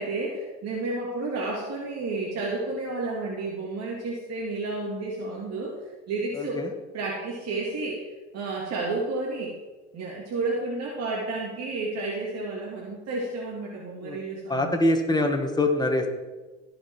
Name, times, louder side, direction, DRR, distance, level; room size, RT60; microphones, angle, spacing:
voice 1, 0.0-5.7 6.1-6.6 6.9-8.0 8.3-9.5 9.9-14.7, right 3 dB, 55° right, -3 dB, 2.2 m, -31 dB
voice 2, 6.4-6.7 14.0-14.2 14.5-16.1, left 2 dB, 15° left, 3 dB, 1.8 m, -24 dB
16.5 x 5.5 x 4.6 m, 1.2 s
supercardioid pair, 80°, 30 cm